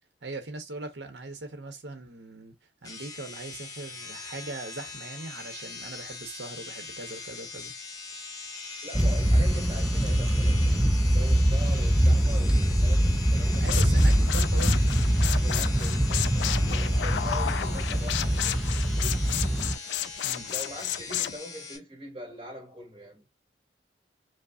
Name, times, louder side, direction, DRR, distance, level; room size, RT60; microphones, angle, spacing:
voice 1, 0.2-2.5 2.8-7.7 13.6-15.0 17.6-17.7 20.2-20.5, right 2 dB, 75° right, 0.9 m, -40 dB
sound 1, 2.8-21.8, left 4 dB, 20° left, 0.7 m, -41 dB
voice 2, 8.8-13.8 15.4-19.2 20.5-23.2, equal, 35° right, 2.8 m, -42 dB
sound 2, 8.9-19.8, equal, 5° right, 0.4 m, -23 dB
sound 3, 13.5-21.4, left 11 dB, 75° left, 0.3 m, -33 dB
5.1 x 2.1 x 2.5 m
head